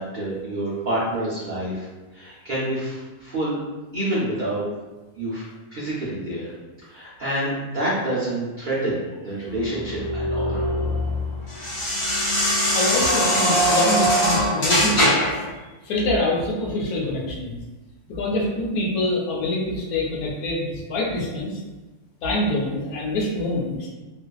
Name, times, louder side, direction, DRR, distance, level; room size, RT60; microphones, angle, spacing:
voice 1, 0.0-1.9 2.1-3.6 3.9-4.6 5.2-5.4 5.7-10.7 15.6-15.7, right 1 dB, 85° right, -9 dB, 0.4 m, -28 dB
sound 1, 9.6-15.4, equal, 35° left, 0.5 m, -22 dB
voice 2, 12.5-15.4 15.8-17.6 18.1-21.6 22.2-23.9, left 1 dB, 75° left, -3 dB, 1.1 m, -25 dB
2.6 x 2.3 x 2.2 m, 1.2 s
omnidirectional pair, 1.6 m